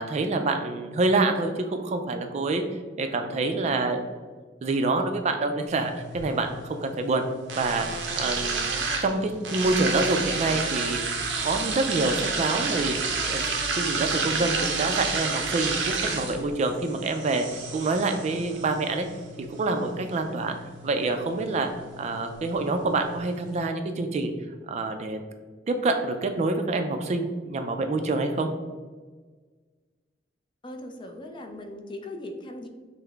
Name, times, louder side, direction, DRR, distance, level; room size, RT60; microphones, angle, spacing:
voice 1, 0.0-2.6 3.0-4.1 4.6-7.2 7.6-7.9 8.2-8.7 9.0-11.0 11.4-12.9 13.3-13.4 13.8-17.5 17.7-19.1 19.6-20.6 20.8-21.7 22.0-24.3 24.7-25.2 25.7-28.5, right 3 dB, 40° right, 6 dB, 0.3 m, -26 dB
sound 1, 5.7-23.7, right 4 dB, 85° right, 0.6 m, -31 dB
voice 2, 30.6-32.7, left 1 dB, 25° left, 4 dB, 0.4 m, -39 dB
5.6 x 2.0 x 3.3 m, 1.4 s
head